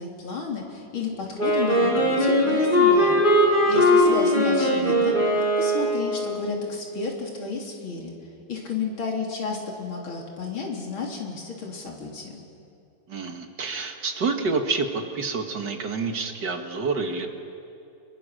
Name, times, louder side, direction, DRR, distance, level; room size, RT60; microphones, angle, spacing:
voice 1, 0.0-3.3 3.7-5.1 5.6-8.1 8.5-12.4, left 4 dB, 90° left, 0 dB, 4.0 m, -32 dB
Wind instrument woodwind instrument, 1.4-6.4, equal, 20° left, 4.6 m, -20 dB
voice 2, 13.1-17.3, right 4 dB, 60° right, 5 dB, 2.2 m, -28 dB
29.0 x 22.0 x 6.5 m, 2.6 s
omnidirectional pair, 2.2 m